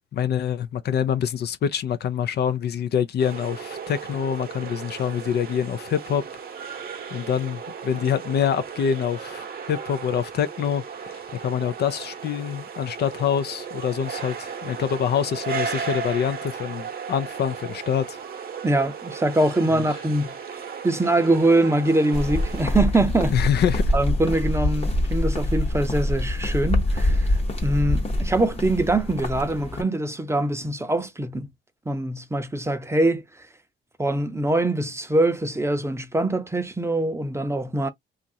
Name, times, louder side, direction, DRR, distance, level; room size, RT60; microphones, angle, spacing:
voice 1, 0.1-6.2 7.1-18.2 19.7-19.8 23.3-23.8, left 8 dB, 55° left, 0.4 m, -25 dB
sound 1, 3.2-22.6, right 6 dB, 50° right, 0.8 m, -35 dB
voice 2, 18.6-20.3 20.8-23.4 23.9-31.5 31.9-33.2 34.0-37.9, right 2 dB, 15° right, 0.6 m, -23 dB
sound 2, 22.1-29.8, left 1 dB, 30° left, 0.9 m, -24 dB
2.8 x 2.5 x 2.6 m
cardioid pair, 90°, 20 cm